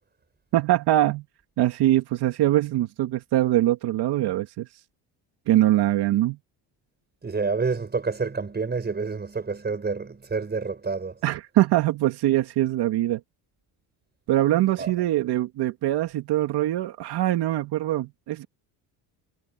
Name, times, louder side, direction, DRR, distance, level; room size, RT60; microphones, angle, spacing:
voice 1, 0.5-1.2 1.6-4.7 5.5-6.4 11.2-13.2 14.3-18.4, right 14 dB, 65° right, 2.5 m, -23 dB
voice 2, 7.2-11.2 14.8-14.9, right 4 dB, 25° right, 5.9 m, -28 dB
supercardioid pair, 95°, 42 cm